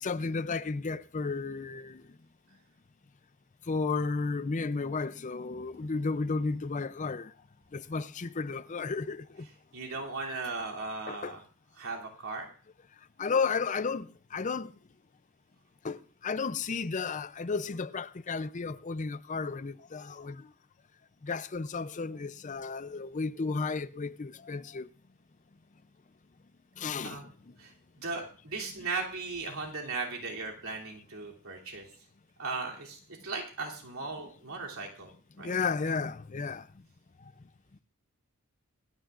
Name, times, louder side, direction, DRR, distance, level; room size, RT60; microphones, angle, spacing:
voice 1, 0.0-2.1 3.6-7.3 7.7-9.5 11.1-11.4 13.2-14.7 15.8-20.5 21.2-24.9 26.8-27.6 28.6-28.9 35.4-36.8 37.2-37.3, left 4 dB, 35° left, 0.5 m, -33 dB
voice 2, 9.7-11.4 11.8-12.5 27.0-27.2 27.6-27.7 28.0-31.9 32.4-35.1 35.4-35.5, right 3 dB, 75° right, 3.0 m, -37 dB
26.5 x 10.5 x 2.5 m
head